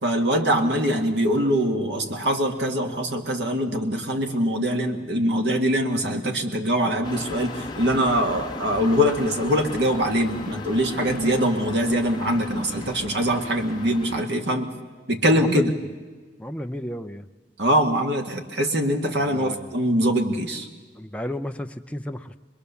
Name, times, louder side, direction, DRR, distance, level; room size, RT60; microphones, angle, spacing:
voice 1, 0.0-14.7 15.1-15.7 17.6-20.7, equal, 80° right, 4 dB, 2.0 m, -23 dB
sound 1, 7.0-14.2, left 3 dB, 25° left, 1.3 m, -37 dB
voice 2, 15.3-15.8 16.4-17.3 19.1-19.7 21.0-22.4, equal, 5° left, 6 dB, 0.7 m, -32 dB
25.0 x 21.5 x 7.0 m, 1.4 s
head